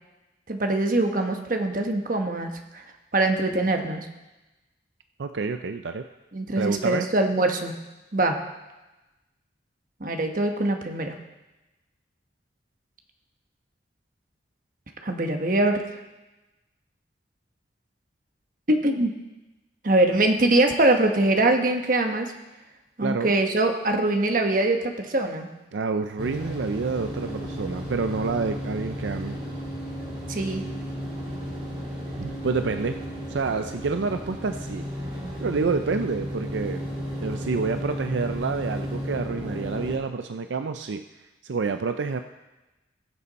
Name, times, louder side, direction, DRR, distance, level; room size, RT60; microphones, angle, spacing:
voice 1, 0.5-2.8 3.1-4.1 6.3-7.7 8.1-8.4 10.0-11.2 15.0-15.8 18.7-19.1 19.8-22.3 23.0-25.5 30.3-30.6, right 2 dB, 45° right, 4 dB, 1.1 m, -23 dB
voice 2, 5.2-6.0 6.6-7.1 23.0-23.3 25.7-29.4 32.2-33.0 33.3-34.9 35.4-36.8 37.2-41.0 41.4-42.2, right 4 dB, 80° right, 8 dB, 0.5 m, -28 dB
sound 1, 26.2-40.0, equal, 30° right, 4.1 m, -33 dB
19.5 x 6.8 x 4.1 m, 1.1 s
head